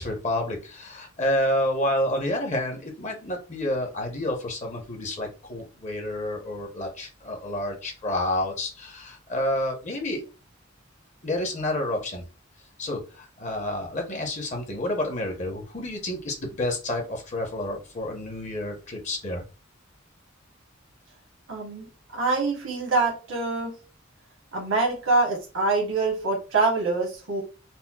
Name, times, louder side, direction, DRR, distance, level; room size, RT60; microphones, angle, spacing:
voice 1, 0.0-10.2 11.2-12.2 12.8-19.4, left 1 dB, 40° left, 2 dB, 0.8 m, -29 dB
voice 2, 21.5-21.9 22.1-23.7 24.5-27.4, right 3 dB, 75° right, -2 dB, 1.1 m, -25 dB
4.2 x 2.0 x 2.2 m, 0.32 s
head